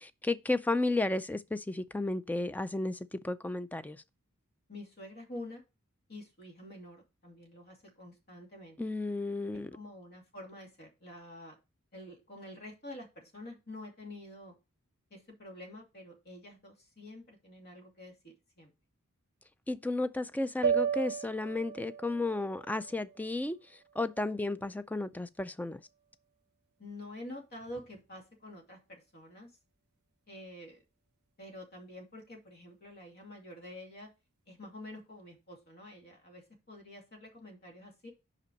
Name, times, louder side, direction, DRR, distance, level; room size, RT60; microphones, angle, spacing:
voice 1, 0.0-4.0 8.8-9.7 19.7-23.6 24.0-25.8, left 2 dB, 5° left, 0.3 m, -33 dB
voice 2, 4.7-5.6 6.1-8.8 9.5-11.6 11.9-14.5 15.1-18.7 26.8-29.5 30.3-30.8 31.4-34.1 34.5-38.1, left 1 dB, 45° left, 2.4 m, -48 dB
sound 1, 20.6-24.9, right 7 dB, 50° right, 0.8 m, -36 dB
5.5 x 5.2 x 5.2 m
head